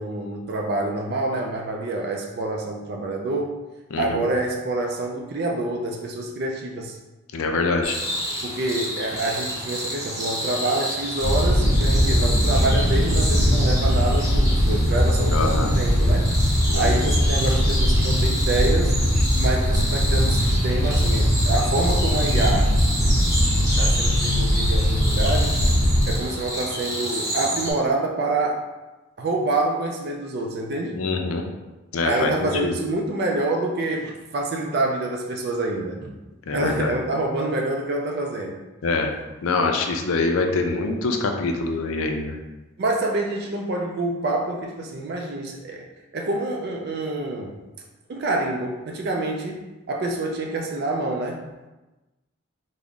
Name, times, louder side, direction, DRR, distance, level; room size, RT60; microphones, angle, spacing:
voice 1, 0.0-3.5 4.0-7.0 8.4-16.3 16.7-19.0 19.4-22.7 23.8-25.6 26.1-28.6 29.2-31.0 32.0-36.1 36.5-38.6 42.8-45.9 46.1-47.6 48.1-51.4, right 2 dB, 50° right, 1 dB, 0.3 m, -27 dB
voice 2, 3.9-4.3 7.3-8.0 15.3-15.8 16.7-17.1 30.9-31.4 31.9-32.8 36.5-37.0 38.8-39.1 39.4-42.4, left 3 dB, 80° left, 4 dB, 0.4 m, -24 dB
sound 1, 7.8-27.7, equal, 15° right, 0.8 m, -30 dB
sound 2, 11.2-26.1, equal, 50° left, 0.9 m, -20 dB
3.5 x 2.0 x 3.7 m, 1.1 s
head